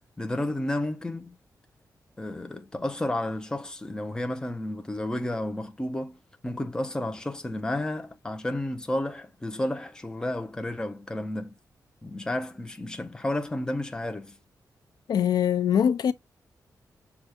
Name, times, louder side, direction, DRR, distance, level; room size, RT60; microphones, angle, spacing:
voice 1, 0.2-1.4 2.2-6.2 6.4-11.5 12.0-14.4, left 1 dB, 10° left, 0.5 m, -31 dB
voice 2, 15.1-16.1, left 8 dB, 75° left, 0.4 m, -22 dB
6.1 x 2.4 x 2.7 m
wide cardioid pair, 170°, 7 cm